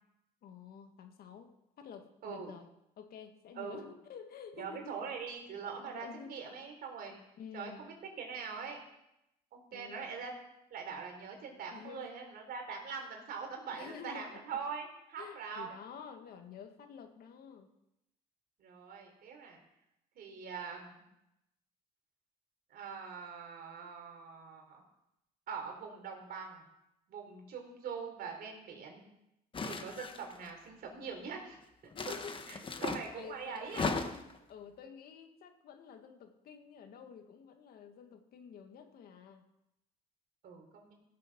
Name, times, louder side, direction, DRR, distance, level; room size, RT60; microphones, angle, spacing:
voice 1, 0.4-1.5 1.8-2.7 3.0-5.0 5.8-6.4 7.4-7.9 9.7-10.1 11.7-12.2 13.7-14.4 15.2-17.7 31.9-32.3 32.6-32.9 33.2-34.2 34.5-39.4, left 7 dB, 65° left, 6 dB, 1.8 m, -50 dB
voice 2, 3.6-3.9 4.6-7.1 7.5-8.8 9.5-10.3 10.7-15.7 18.6-19.6 20.2-21.0 22.7-24.8 25.5-26.6 27.1-29.0 29.6-31.6 32.1-32.2 32.5-33.9 40.4-40.9, right 6 dB, 65° right, 2 dB, 3.9 m, -43 dB
sound 1, 29.5-30.5 31.9-33.1 33.6-34.4, left 4 dB, 30° left, 1.3 m, -37 dB
16.5 x 7.6 x 6.1 m, 0.85 s
cardioid pair, 110°, 17 cm